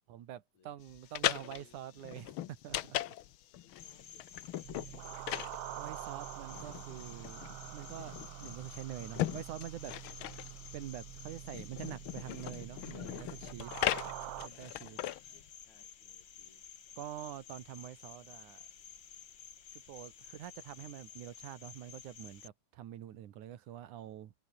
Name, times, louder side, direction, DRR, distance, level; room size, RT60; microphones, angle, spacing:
voice 1, 0.1-3.0 5.8-9.9 10.7-13.7 14.4-15.0 17.0-18.7 19.7-24.3, right 11 dB, 85° right, 3.0 m, -46 dB
sound 1, 0.9-15.5, left 13 dB, 90° left, 1.1 m, -39 dB
voice 2, 1.1-1.8 3.6-5.4 14.5-16.8, left 6 dB, 70° left, 5.4 m, -66 dB
Cricket, 3.8-22.5, left 8 dB, 45° left, 2.0 m, -53 dB
sound 2, 4.6-14.5, right 15 dB, 70° right, 1.5 m, -46 dB
omnidirectional pair, 3.4 m